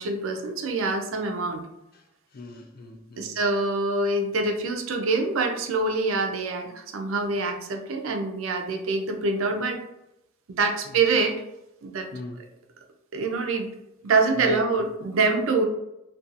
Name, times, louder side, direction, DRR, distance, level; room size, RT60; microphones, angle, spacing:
voice 1, 0.0-1.6 3.2-9.8 10.5-11.4 11.8-12.1 13.1-13.7 14.0-15.6, right 3 dB, 80° right, 4 dB, 0.4 m, -25 dB
voice 2, 2.3-3.4 10.8-11.0 12.1-12.4 14.3-14.8, left 2 dB, 45° left, 4 dB, 0.4 m, -38 dB
2.6 x 2.3 x 2.5 m, 0.85 s
head